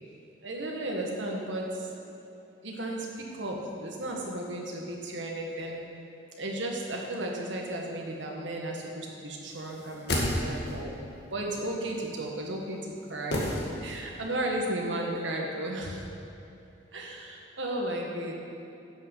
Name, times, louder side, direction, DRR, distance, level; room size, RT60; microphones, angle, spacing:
voice 1, 0.4-1.9 2.6-5.8 6.3-11.0 11.3-13.5 13.8-16.0 16.9-18.3, right 1 dB, 75° right, -1 dB, 1.7 m, -34 dB
sound 1, 9.7-10.9 13.3-14.2 14.5-14.6, left 1 dB, 55° left, 1.7 m, -31 dB
10.5 x 6.3 x 7.3 m, 2.9 s
head